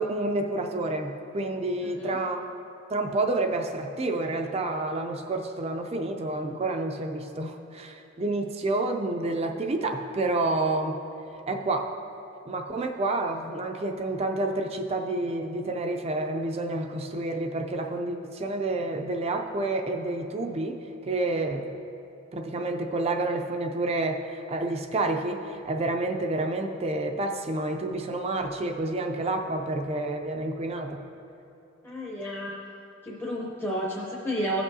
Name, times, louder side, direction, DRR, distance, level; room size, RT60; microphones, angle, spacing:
voice 1, 0.0-2.4 2.9-11.0 11.5-11.9 12.5-21.7 22.3-31.0, right 2 dB, 30° right, 3 dB, 0.4 m, -29 dB
voice 2, 1.8-2.2 31.8-32.6 33.0-34.6, equal, 10° left, -4 dB, 0.7 m, -31 dB
16.5 x 6.0 x 2.7 m, 2.8 s
head